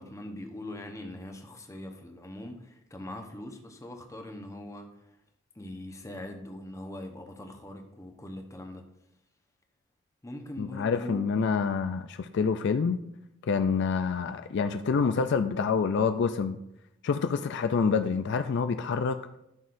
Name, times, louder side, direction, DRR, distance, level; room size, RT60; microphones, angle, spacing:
voice 1, 0.0-4.9 5.5-8.8 10.2-11.3, left 1 dB, 15° left, 4 dB, 0.9 m, -41 dB
voice 2, 10.6-13.0 13.5-16.6 17.0-19.2, left 5 dB, 60° left, 9 dB, 0.4 m, -27 dB
13.0 x 6.2 x 2.6 m, 0.84 s
head